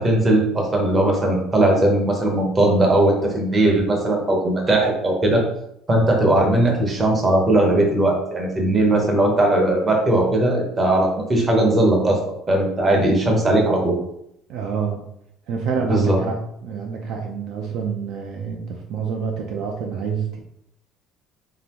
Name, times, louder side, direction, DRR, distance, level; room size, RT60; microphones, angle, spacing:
voice 1, 0.0-5.4 5.9-12.2 12.5-13.9 15.9-16.2, right 1 dB, 20° right, 0 dB, 0.8 m, -18 dB
voice 2, 14.5-15.0 15.5-20.4, right 6 dB, 55° right, 2 dB, 0.5 m, -27 dB
3.8 x 3.8 x 2.9 m, 0.75 s
cardioid pair, 175°, 0 cm